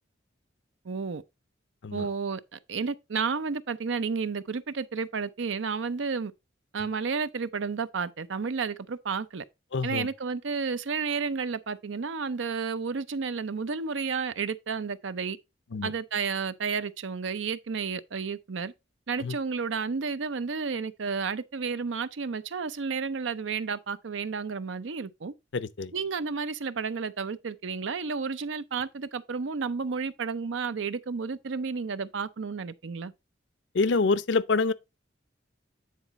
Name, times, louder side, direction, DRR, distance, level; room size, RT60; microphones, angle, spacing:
voice 1, 0.8-1.2 1.9-6.3 6.7-9.4 9.8-15.4 15.8-18.7 19.1-25.3 25.9-33.1, right 5 dB, 75° right, 0.6 m, -31 dB
voice 2, 9.7-10.1 15.7-15.9 19.2-19.4 25.5-25.9 33.7-34.7, left 4 dB, 65° left, 0.5 m, -26 dB
9.4 x 4.0 x 4.1 m
head